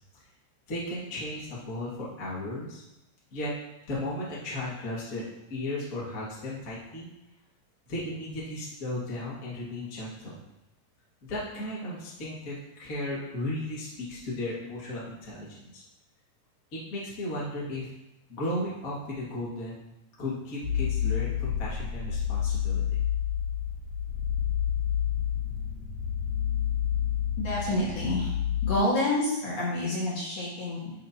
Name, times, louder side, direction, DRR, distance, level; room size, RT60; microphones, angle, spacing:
voice 1, 0.7-2.8 3.3-3.5 3.9-5.2 5.5-7.1 7.9-10.4 11.2-15.8 16.7-17.9 18.3-19.9 20.2-22.8, left 1 dB, 30° left, -7 dB, 1.9 m, -35 dB
sound 1, 20.6-28.8, left 9 dB, 80° left, 5.1 m, -29 dB
voice 2, 27.4-28.3 28.6-30.9, left 1 dB, 50° left, -6 dB, 2.7 m, -28 dB
12.5 x 6.5 x 2.9 m, 0.92 s
omnidirectional pair, 4.2 m